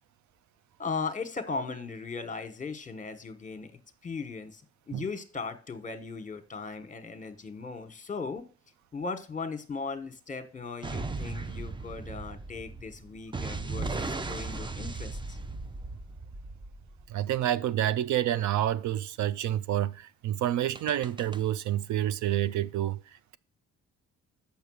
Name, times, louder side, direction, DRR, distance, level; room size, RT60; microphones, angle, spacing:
voice 1, 0.8-4.6 4.9-8.5 8.9-15.4, left 4 dB, 25° left, 1.3 m, -38 dB
sound 1, 10.8-17.2 20.8-21.4, right 3 dB, 15° right, 0.5 m, -37 dB
voice 2, 17.1-23.4, right 12 dB, 70° right, 0.5 m, -28 dB
6.7 x 6.0 x 6.3 m
cardioid pair, 90°, 30 cm